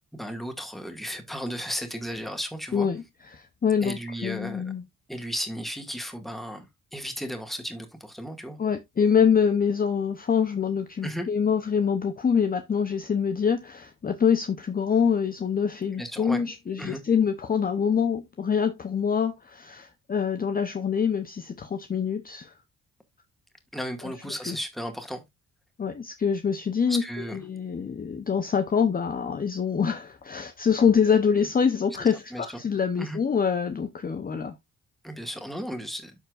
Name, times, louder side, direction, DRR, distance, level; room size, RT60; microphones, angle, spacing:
voice 1, 0.1-2.9 3.8-4.6 5.1-6.6 6.9-8.6 11.0-11.3 16.0-16.4 16.8-17.0 23.7-25.2 26.9-27.4 32.0-32.6 33.0-33.2 35.0-36.2, equal, ahead, 2.0 m, -34 dB
voice 2, 2.7-3.0 3.3-4.8 8.6-22.5 24.0-24.1 24.4-24.6 25.8-27.0 27.3-34.5, left 7 dB, 30° left, 0.8 m, -25 dB
13.0 x 4.5 x 2.5 m
cardioid pair, 90°, 30 cm